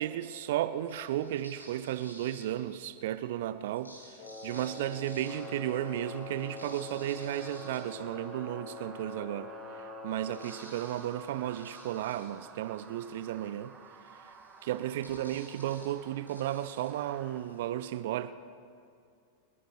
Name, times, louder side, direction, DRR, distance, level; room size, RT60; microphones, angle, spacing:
voice 1, 0.0-13.7 14.1-14.3 14.6-18.3, right 12 dB, 55° right, 13 dB, 0.5 m, -34 dB
sound 1, 0.9-3.0 3.6-8.8 9.3-9.4 9.6-17.7, right 1 dB, 85° left, 2.1 m, -55 dB
Wind instrument woodwind instrument, 4.2-10.6, left 4 dB, 55° left, 2.0 m, -44 dB
sound 2, 5.2-17.4, right 5 dB, 20° right, 1.6 m, -52 dB
30.0 x 11.0 x 3.4 m, 2.3 s
figure-of-eight pair, 90°, 0 cm